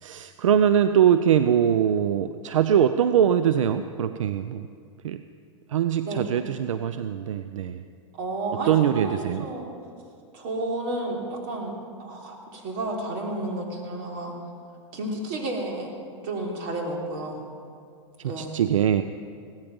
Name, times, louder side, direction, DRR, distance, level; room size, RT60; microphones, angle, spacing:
voice 1, 0.0-4.7 5.0-5.2 5.7-7.8 8.7-9.4 18.2-19.0, right 9 dB, 85° right, 10 dB, 0.6 m, -22 dB
voice 2, 8.2-9.7 10.3-14.3 14.9-15.9 16.2-17.5 18.2-18.6, right 2 dB, 50° right, 0 dB, 3.4 m, -31 dB
17.0 x 14.0 x 5.4 m, 2.3 s
hypercardioid pair, 120°, 16 cm